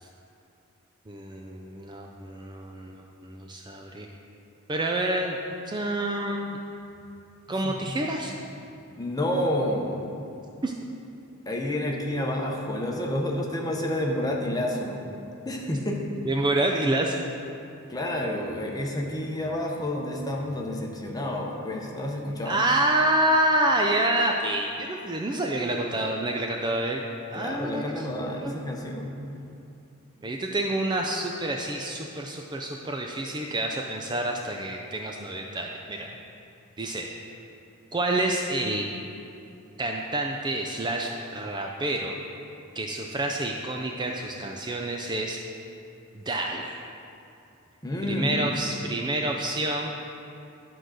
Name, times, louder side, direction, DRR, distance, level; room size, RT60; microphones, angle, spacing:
voice 1, 1.1-4.1 4.7-5.4 5.7-6.6 7.5-8.3 10.6-10.7 16.3-17.2 22.5-27.0 27.3-28.1 28.4-28.5 30.2-36.1 36.8-37.1 37.9-38.9 39.8-42.2 42.8-45.4 46.1-46.8 48.1-50.2, right 1 dB, 20° right, 1 dB, 0.4 m, -28 dB
voice 2, 9.0-10.1 11.5-15.0 15.4-16.0 17.9-22.6 27.3-29.1 47.8-48.6, left 1 dB, 20° left, 0 dB, 0.9 m, -29 dB
11.5 x 3.9 x 6.3 m, 2.6 s
head